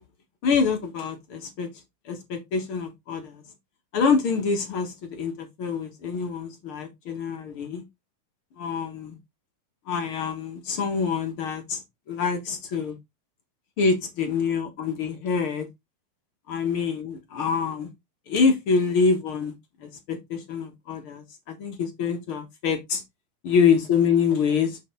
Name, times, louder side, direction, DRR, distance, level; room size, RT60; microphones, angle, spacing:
voice 1, 0.4-1.7 2.0-3.4 3.9-7.8 8.6-9.2 9.9-11.8 12.1-13.0 13.8-15.7 16.5-17.9 18.3-19.5 19.8-23.0 23.4-24.8, left 5 dB, 50° left, 1.7 m, -25 dB
7.3 x 5.1 x 3.8 m
omnidirectional pair, 4.1 m